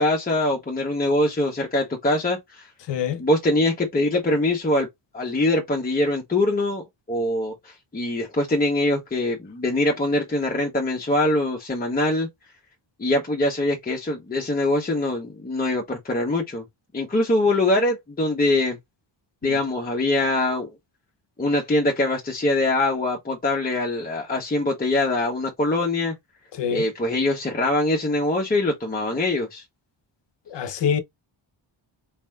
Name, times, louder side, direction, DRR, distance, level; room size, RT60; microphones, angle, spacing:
voice 1, 0.0-2.7 3.2-4.9 5.1-12.3 13.0-16.6 16.9-18.8 19.4-20.7 21.4-26.1 26.7-29.6 30.6-30.8, left 2 dB, 20° left, 1.0 m, -23 dB
voice 2, 2.9-3.2 19.4-19.6 26.5-26.8 30.5-31.0, left 8 dB, 60° left, 0.8 m, -25 dB
4.3 x 4.1 x 2.3 m
wide cardioid pair, 180°, 49 cm